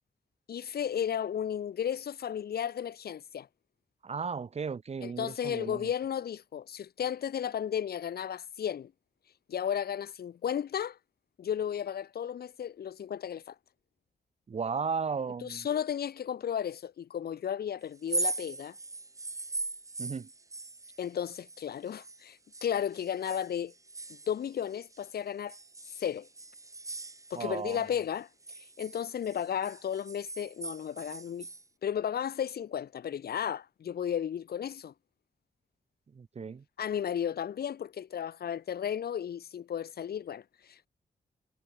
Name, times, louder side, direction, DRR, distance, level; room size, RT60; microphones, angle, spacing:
voice 1, 0.5-3.5 5.0-8.9 9.5-11.0 11.4-13.5 15.4-18.7 21.0-23.7 24.1-25.6 26.0-26.3 27.3-28.3 28.6-31.5 31.8-34.9 36.8-40.9, left 9 dB, 80° left, 1.2 m, -34 dB
voice 2, 4.0-5.9 14.5-15.7 20.0-20.3 27.3-27.9 36.1-36.6, right 5 dB, 40° right, 2.5 m, -35 dB
sound 1, 17.9-22.2 22.5-25.0 25.5-27.8 28.1-31.6, right 3 dB, 20° right, 2.1 m, -40 dB
wide cardioid pair, 170°, 16 cm